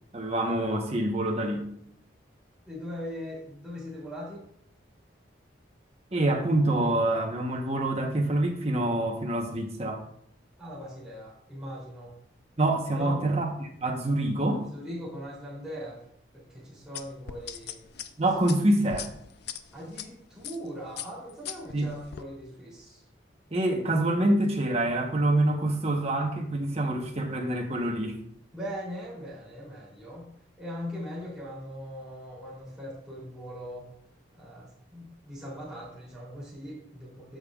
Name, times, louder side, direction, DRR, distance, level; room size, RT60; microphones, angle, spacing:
voice 1, 0.1-1.6 6.1-10.0 12.6-14.6 18.2-19.1 21.7-21.9 23.5-28.2, right 1 dB, 35° right, 2 dB, 1.1 m, -26 dB
voice 2, 2.6-4.5 10.6-12.1 12.9-13.2 14.4-16.0 16.3-17.8 19.7-23.0 28.5-30.3 30.6-33.9 34.3-37.4, equal, 5° right, -7 dB, 3.1 m, -40 dB
sound 1, 16.9-20.1 20.4-20.7 21.0-22.2, left 9 dB, 55° left, 0.4 m, -39 dB
14.0 x 5.3 x 2.4 m, 0.68 s
head